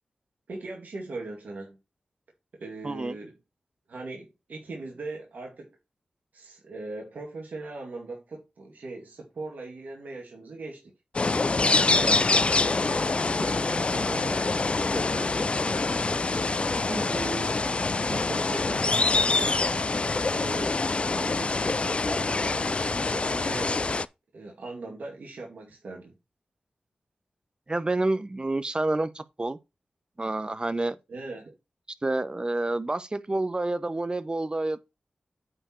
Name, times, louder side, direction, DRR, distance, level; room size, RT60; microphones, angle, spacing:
voice 1, 0.5-1.8 2.6-3.3 3.9-5.8 6.3-10.9 11.7-14.6 14.9-15.8 17.0-17.6 18.1-19.6 20.3-22.7 23.1-24.0 24.3-26.1 31.1-31.5, right 2 dB, 75° right, 2.2 m, -39 dB
voice 2, 2.8-3.1 12.0-12.2 16.7-17.1 27.7-29.6 30.2-31.0 32.0-34.8, right 2 dB, 35° right, 0.8 m, -29 dB
sound 1, 11.1-24.1, left 3 dB, 40° left, 0.4 m, -25 dB
8.8 x 4.5 x 4.4 m
cardioid pair, 45°, 3 cm